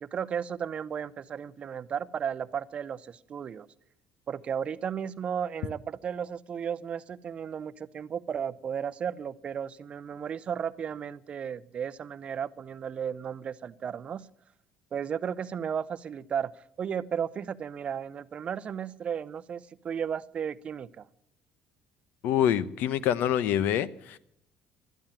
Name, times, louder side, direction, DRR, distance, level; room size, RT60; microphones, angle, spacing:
voice 1, 0.0-3.7 4.3-14.3 14.9-16.5 16.8-21.1, right 8 dB, 40° right, 0.6 m, -34 dB
voice 2, 22.2-24.2, left 10 dB, 75° left, 0.8 m, -26 dB
13.0 x 10.5 x 8.7 m
cardioid pair, 125°, 3 cm